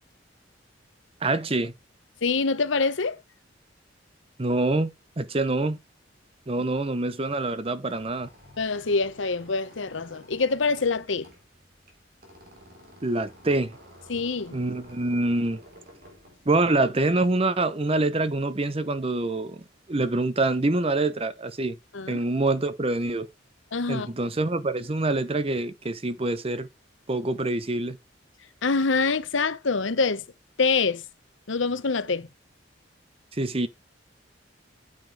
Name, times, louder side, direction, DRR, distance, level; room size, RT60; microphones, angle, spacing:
voice 1, 1.2-1.7 4.4-5.8 6.5-8.3 13.0-13.8 14.5-15.6 16.5-21.8 22.1-23.3 23.9-26.7 27.1-28.0 33.4-33.7, right 2 dB, 30° right, 0.7 m, -25 dB
voice 2, 2.2-3.2 8.6-11.3 14.1-14.6 21.9-22.2 23.7-24.1 28.6-30.2 30.6-31.0 31.5-32.3, left 4 dB, 75° left, 0.9 m, -25 dB
Squeak, 7.9-17.2, equal, 50° right, 4.0 m, -52 dB
9.2 x 7.5 x 3.3 m
head